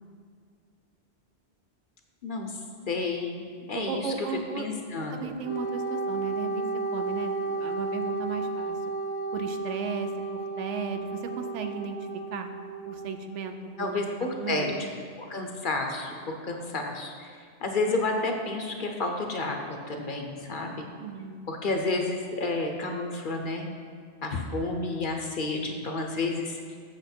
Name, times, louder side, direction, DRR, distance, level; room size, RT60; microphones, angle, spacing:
voice 1, 2.2-2.5 2.9-3.4 3.7-4.3 4.6-5.2 13.8-14.9 15.2-19.6 19.9-20.9 21.5-23.7 24.2-26.6, left 3 dB, 50° left, 3 dB, 0.8 m, -30 dB
voice 2, 3.7-4.7 5.1-6.7 6.9-8.8 9.3-12.0 12.3-12.5 12.8-14.0 14.4-14.9 21.0-21.5, right 5 dB, 80° right, 6 dB, 1.0 m, -35 dB
Wind instrument woodwind instrument, 5.4-13.2, right 3 dB, 40° right, 1.0 m, -33 dB
8.0 x 6.1 x 4.3 m, 2.1 s
omnidirectional pair, 1.2 m